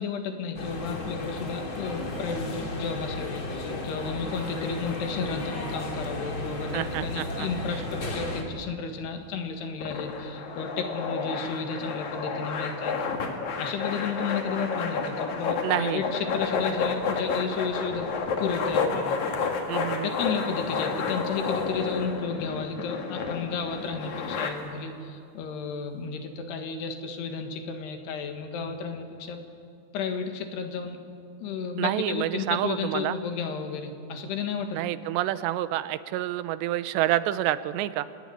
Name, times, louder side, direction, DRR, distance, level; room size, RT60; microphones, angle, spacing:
voice 1, 0.0-13.0 13.6-18.1 18.4-19.2 20.2-29.4 29.9-31.0 31.4-34.8, left 5 dB, 75° left, 5 dB, 3.7 m, -33 dB
sound 1, 0.6-8.4, left 2 dB, 35° left, 3.0 m, -34 dB
voice 2, 6.7-7.5 15.6-16.0 19.7-20.1 31.8-33.2 34.7-38.1, right 14 dB, 85° right, 14 dB, 3.0 m, -28 dB
sound 2, 9.8-24.5, left 5 dB, 50° left, 2.8 m, -30 dB
26.0 x 19.0 x 9.7 m, 2.4 s
omnidirectional pair, 4.9 m